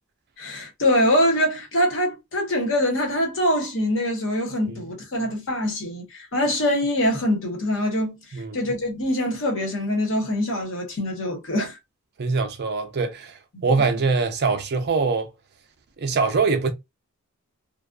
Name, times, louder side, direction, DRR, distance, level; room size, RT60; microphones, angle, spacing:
voice 1, 0.4-8.2 8.5-11.8 13.5-13.8, left 1 dB, 60° left, 1.1 m, -24 dB
voice 2, 12.2-13.3 13.6-15.3 16.0-16.7, right 4 dB, 50° right, 0.5 m, -23 dB
2.5 x 2.3 x 2.3 m
head